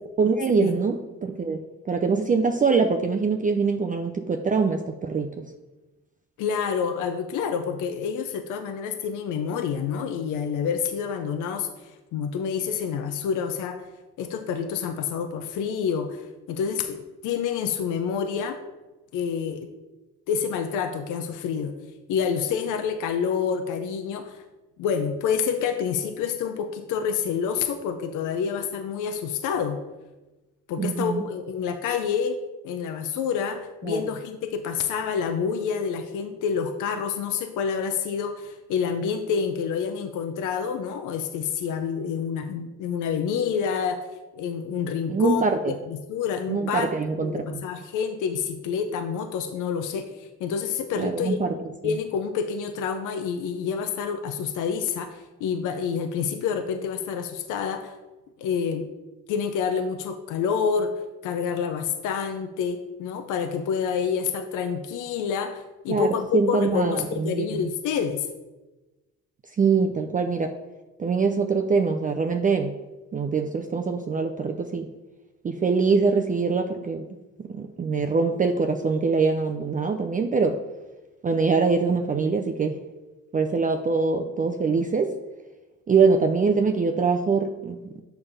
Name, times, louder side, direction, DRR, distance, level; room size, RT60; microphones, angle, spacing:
voice 1, 0.2-5.5 30.8-31.2 33.8-34.0 45.1-45.7 46.5-47.6 51.0-51.5 51.8-52.0 65.9-67.6 69.6-70.5 71.0-72.8 73.1-74.9 75.4-77.1 77.4-80.6 81.2-82.8 83.3-85.1 85.9-87.9, right 4 dB, 25° right, 5 dB, 0.4 m, -23 dB
voice 2, 6.4-13.9 14.2-18.6 19.1-19.7 20.3-21.7 22.1-24.4 24.8-29.8 30.7-44.0 44.3-45.5 45.9-46.9 47.2-51.4 51.8-58.0 58.4-58.9 59.3-60.9 61.2-68.3, left 7 dB, 85° left, 7 dB, 0.6 m, -28 dB
7.0 x 3.4 x 5.5 m, 1.1 s
cardioid pair, 90°, 30 cm